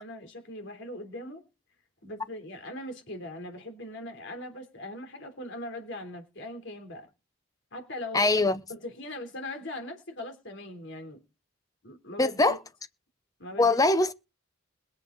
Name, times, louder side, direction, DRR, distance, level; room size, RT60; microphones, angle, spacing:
voice 1, 0.0-1.5 2.0-7.1 7.7-8.3 8.7-11.2 11.8-12.6 13.4-13.8, left 1 dB, 60° left, 3.3 m, -40 dB
voice 2, 8.1-8.6 12.2-12.6 13.6-14.1, left 2 dB, 15° left, 0.6 m, -22 dB
21.5 x 7.6 x 3.9 m
head